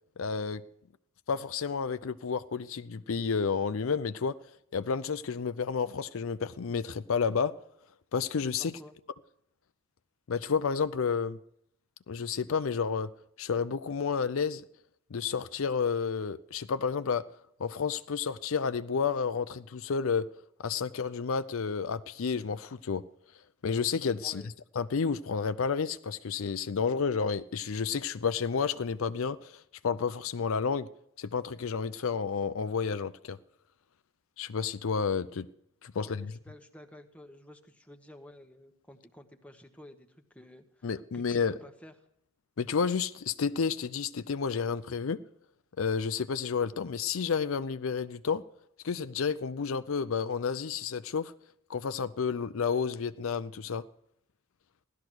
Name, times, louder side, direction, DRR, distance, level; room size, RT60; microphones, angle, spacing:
voice 1, 0.2-0.6 1.3-4.4 4.7-7.6 8.1-8.7 10.3-11.4 12.1-13.1 13.4-14.6 15.1-17.3 17.6-20.2 20.6-23.0 23.6-30.9 31.2-33.4 34.4-35.5 35.8-36.3 40.8-41.5 42.6-45.2 45.8-48.4 48.8-51.3 51.7-53.8, left 5 dB, 65° left, 0.5 m, -31 dB
voice 2, 8.6-8.9 24.2-24.5 35.9-41.9, left 1 dB, 5° left, 1.1 m, -52 dB
16.5 x 12.0 x 6.2 m
head